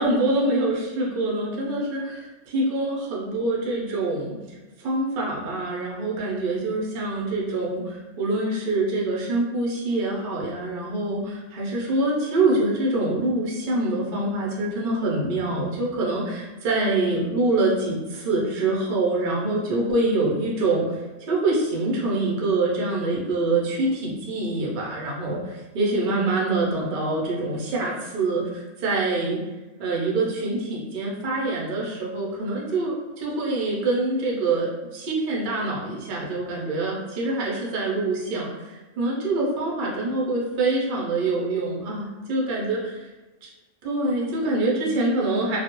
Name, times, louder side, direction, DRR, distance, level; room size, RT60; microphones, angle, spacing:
voice 1, 0.0-21.0 21.3-29.4 29.8-42.8 43.8-45.6, right 2 dB, 60° right, -4 dB, 0.5 m, -25 dB
2.3 x 2.0 x 2.8 m, 1.1 s
omnidirectional pair, 1.4 m